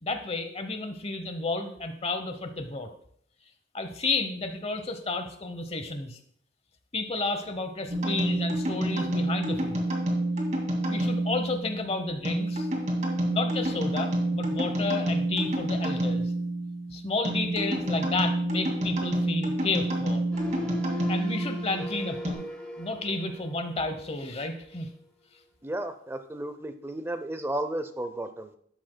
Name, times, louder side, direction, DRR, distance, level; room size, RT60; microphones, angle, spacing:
voice 1, 0.0-2.9 3.7-6.2 6.9-9.9 10.9-12.7 13.2-16.3 16.9-20.2 21.1-22.4 22.8-24.9, left 3 dB, 35° left, 7 dB, 0.9 m, -31 dB
sound 1, 7.9-22.3, right 1 dB, 40° right, 2.2 m, -28 dB
sound 2, 20.3-24.3 24.7-24.9, left 2 dB, 5° left, 1.2 m, -40 dB
voice 2, 25.6-28.6, right 1 dB, 15° right, 10 dB, 0.5 m, -33 dB
11.5 x 7.8 x 2.2 m, 0.64 s
head